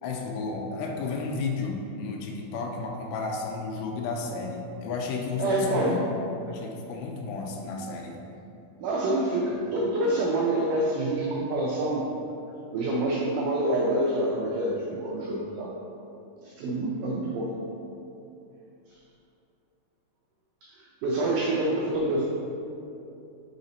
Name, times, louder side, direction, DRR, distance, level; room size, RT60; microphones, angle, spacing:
voice 1, 0.0-6.0 6.4-8.2, left 4 dB, 85° left, 0 dB, 2.5 m, -32 dB
voice 2, 5.4-6.0 7.8-7.9 8.8-12.1 12.7-15.7 16.4-17.5 18.9-19.0 20.6-22.3, right 1 dB, 90° right, -3 dB, 1.8 m, -27 dB
5.8 x 3.9 x 4.2 m, 2.8 s
omnidirectional pair, 4.3 m